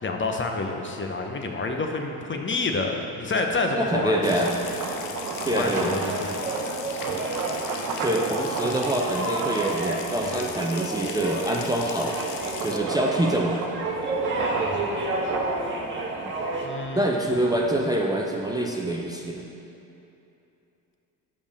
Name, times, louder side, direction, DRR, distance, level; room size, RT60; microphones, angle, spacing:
voice 1, 0.0-4.4 5.4-6.3 6.9-7.2 14.6-15.0 16.6-17.5, left 3 dB, 25° left, 3 dB, 0.8 m, -29 dB
voice 2, 3.7-4.5 5.4-6.0 8.0-12.2 12.6-13.7 16.9-19.4, right 1 dB, 10° right, -1 dB, 0.6 m, -25 dB
sound 1, 4.0-10.4 10.9-18.1, right 4 dB, 50° right, 0.9 m, -35 dB
Water tap faucet / Sink (filling or washing) / Trickle dribble, 4.2-12.8, left 8 dB, 75° left, 0.7 m, -39 dB
sound 2, 4.3-16.7, right 2 dB, 25° right, 1.3 m, -31 dB
5.2 x 5.2 x 6.4 m, 2.8 s
hypercardioid pair, 60°, 42 cm